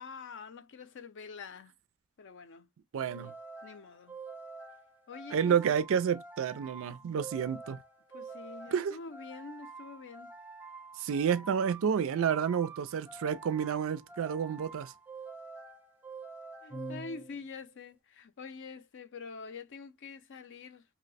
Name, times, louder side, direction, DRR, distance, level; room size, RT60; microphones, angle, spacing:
voice 1, 0.0-1.7 2.2-2.7 3.1-3.3 3.6-4.2 5.1-5.7 8.1-10.3 16.6-20.8, left 4 dB, 55° left, 0.5 m, -46 dB
voice 2, 2.9-3.3 5.3-7.8 8.7-9.0 11.0-14.9, right 7 dB, 65° right, 0.4 m, -30 dB
sound 1, 3.1-17.6, right 3 dB, 5° right, 0.5 m, -47 dB
2.7 x 2.0 x 4.0 m
head